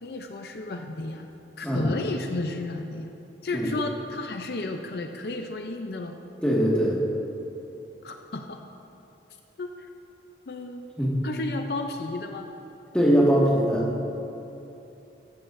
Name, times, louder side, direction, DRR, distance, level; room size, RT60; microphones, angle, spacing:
voice 1, 0.0-1.3 1.6-3.1 3.4-6.2 8.0-8.6 9.6-9.9 10.5-10.9 11.2-12.5, left 2 dB, 65° left, 5 dB, 0.6 m, -33 dB
voice 2, 1.6-1.9 3.5-3.7 6.4-7.0 11.0-11.2 12.9-13.9, equal, 5° left, -5 dB, 1.8 m, -21 dB
14.0 x 14.0 x 2.6 m, 2.9 s
head